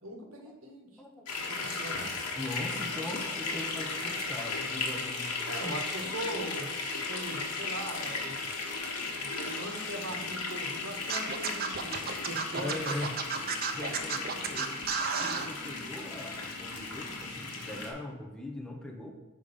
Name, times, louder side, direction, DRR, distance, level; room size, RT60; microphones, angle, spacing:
voice 1, 0.0-0.9 1.3-2.1 5.5-6.7 7.1-8.4 9.0-12.0 12.2-12.7, right 1 dB, 65° right, 2 dB, 1.3 m, -40 dB
voice 2, 1.0-1.3 2.3-5.8 12.5-13.2 13.7-14.9 15.2-19.1, left 1 dB, 5° left, 1 dB, 0.6 m, -40 dB
sound 1, 1.3-17.9, left 3 dB, 90° left, 1.2 m, -36 dB
Scratching (performance technique), 11.1-15.5, right 6 dB, 45° right, 0.6 m, -32 dB
5.1 x 5.0 x 5.4 m, 1.1 s
head